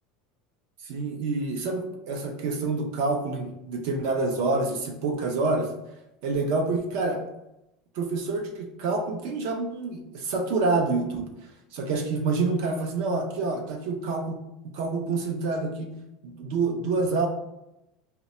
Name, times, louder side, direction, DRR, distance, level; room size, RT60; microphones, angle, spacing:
voice 1, 0.8-5.7 6.2-7.2 8.0-11.3 11.7-15.9 16.4-17.3, right 3 dB, 55° right, 4 dB, 0.5 m, -27 dB
2.8 x 2.2 x 4.1 m, 0.88 s
cardioid pair, 175°, 0 cm